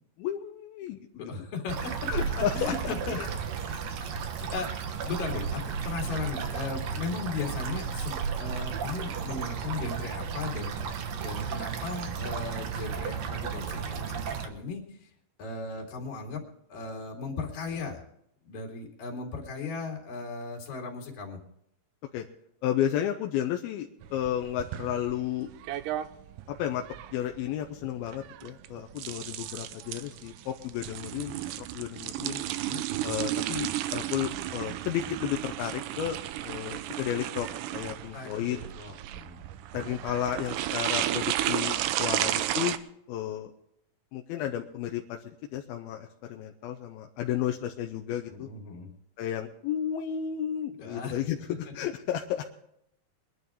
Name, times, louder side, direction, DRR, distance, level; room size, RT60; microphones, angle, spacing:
voice 1, 0.2-1.1 2.1-2.7 3.1-3.3 3.7-3.8 22.1-22.3 22.6-25.5 26.5-26.8 27.1-32.5 33.0-36.2 36.4-38.6 39.7-42.8 43.1-43.5 44.1-48.5 49.2-52.6, left 10 dB, 85° left, 4 dB, 2.6 m, -32 dB
voice 2, 1.1-2.1 2.5-3.2 4.0-15.1 15.4-16.4 16.7-18.1 18.4-21.4 32.5-32.8 38.1-39.4 48.3-48.9 50.8-51.2, left 4 dB, 65° left, 0 dB, 4.1 m, -37 dB
sound 1, 1.7-14.5, right 6 dB, 65° right, 1.8 m, -34 dB
sound 2, 24.0-42.8, right 13 dB, 80° right, 2.0 m, -33 dB
23.0 x 11.0 x 3.6 m, 0.74 s
omnidirectional pair, 4.3 m